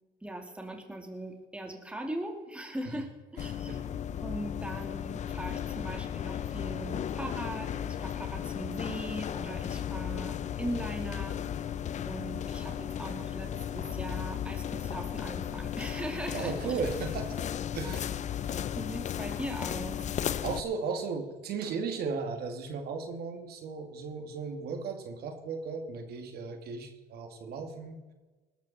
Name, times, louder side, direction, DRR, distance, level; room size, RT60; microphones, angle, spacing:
voice 1, 0.2-3.8 4.2-11.4 12.0-16.8 17.8-18.0 18.8-20.0, right 1 dB, 5° right, 3 dB, 2.6 m, -40 dB
sound 1, 3.4-20.6, left 9 dB, 45° left, 0.6 m, -35 dB
voice 2, 3.4-3.8 16.3-17.4 17.7-18.1 20.4-28.0, right 5 dB, 70° right, 5 dB, 2.4 m, -36 dB
20.0 x 13.0 x 4.3 m, 1.2 s
cardioid pair, 110°, 17 cm